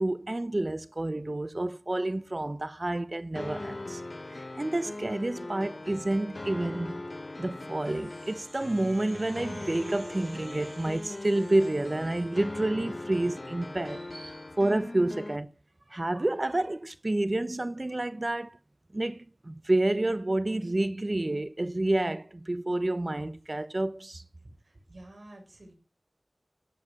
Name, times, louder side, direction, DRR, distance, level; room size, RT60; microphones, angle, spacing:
voice 1, 0.0-4.0 4.3-7.0 7.4-15.5 15.9-18.6 18.9-24.2, right 1 dB, 50° right, 0.8 m, -29 dB
sound 1, 3.4-15.4, left 2 dB, 60° left, 1.1 m, -40 dB
voice 2, 24.6-25.7, right 1 dB, 85° right, 6.7 m, -50 dB
17.0 x 8.3 x 6.6 m
wide cardioid pair, 40°, 0 cm